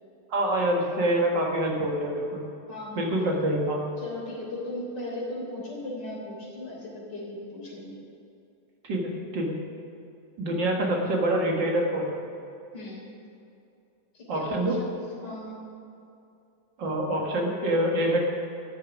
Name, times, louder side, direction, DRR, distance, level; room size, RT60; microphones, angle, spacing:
voice 1, 0.3-2.5 3.0-3.8 8.8-9.6 10.4-12.2 14.3-14.8 16.8-18.2, right 1 dB, 65° right, -1 dB, 2.5 m, -26 dB
voice 2, 2.7-3.0 4.0-8.0 12.7-13.0 14.1-15.0 15.2-15.6, left 1 dB, 60° left, -3 dB, 4.1 m, -37 dB
13.5 x 6.7 x 10.0 m, 2.6 s
omnidirectional pair, 2.1 m